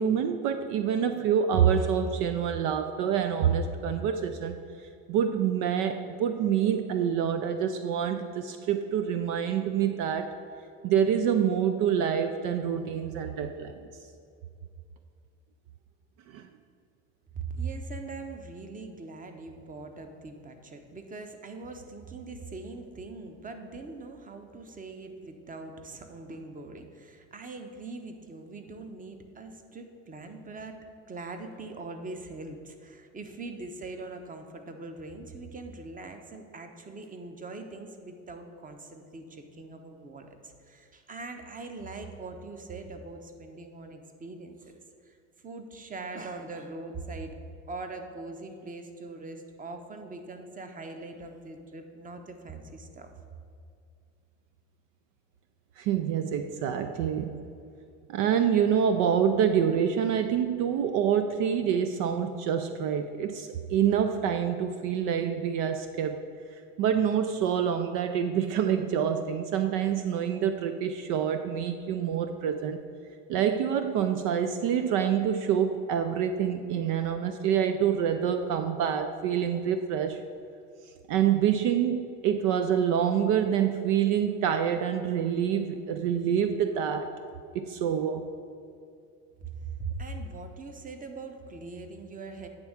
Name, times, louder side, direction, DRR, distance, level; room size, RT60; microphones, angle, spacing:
voice 1, 0.0-4.6 5.1-10.3 10.8-13.9 16.3-16.4 55.8-57.4 58.1-66.2 66.8-72.8 73.3-80.2 81.1-87.1 87.5-88.3, right 8 dB, 70° right, 8 dB, 0.5 m, -26 dB
voice 2, 17.3-30.8 31.1-44.7 45.0-45.2 45.4-47.3 47.7-53.1 89.4-92.5, right 3 dB, 25° right, 6 dB, 1.0 m, -41 dB
8.7 x 3.6 x 6.4 m, 2.3 s
hypercardioid pair, 75°, 33 cm